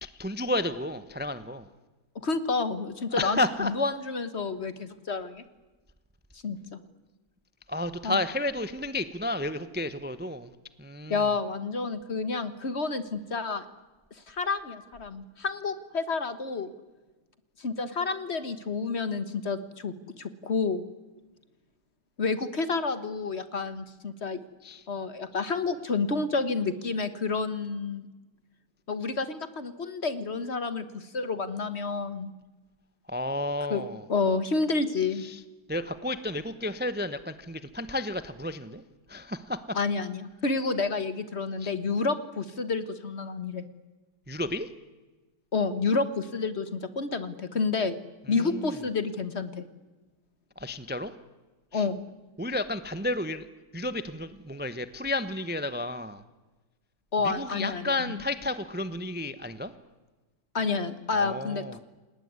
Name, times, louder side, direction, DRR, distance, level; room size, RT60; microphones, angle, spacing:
voice 1, 0.0-1.7 3.1-3.7 7.7-10.5 10.8-11.3 24.6-24.8 33.1-34.0 35.2-35.4 35.7-38.8 39.1-39.8 41.6-41.7 44.3-44.7 48.4-48.7 50.6-51.1 51.7-51.8 52.4-53.5 53.7-56.2 57.2-59.7 61.1-61.8, left 2 dB, 10° right, 13 dB, 0.7 m, -32 dB
voice 2, 2.2-5.4 6.4-6.8 8.0-8.2 11.1-13.6 14.3-16.7 17.6-20.8 22.2-24.4 24.9-28.1 28.9-32.3 33.7-35.2 39.7-43.7 45.5-47.9 48.3-49.6 51.7-52.0 57.1-58.2 60.5-61.8, left 4 dB, 45° left, 13 dB, 1.5 m, -29 dB
28.5 x 19.0 x 9.6 m, 1.2 s
omnidirectional pair, 1.7 m